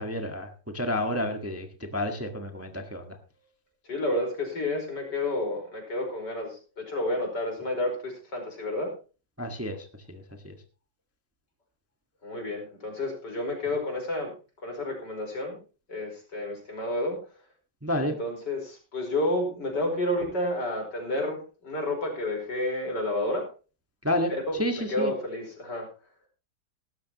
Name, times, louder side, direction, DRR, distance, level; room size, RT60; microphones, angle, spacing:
voice 1, 0.0-3.2 9.4-10.5 17.8-18.1 24.0-25.1, left 1 dB, 10° right, 4 dB, 1.4 m, -30 dB
voice 2, 3.9-8.9 12.2-14.3 14.6-15.6 15.9-17.2 18.0-23.5 24.5-25.9, left 1 dB, 65° left, 2 dB, 5.5 m, -30 dB
17.0 x 13.5 x 3.0 m, 0.35 s
omnidirectional pair, 2.0 m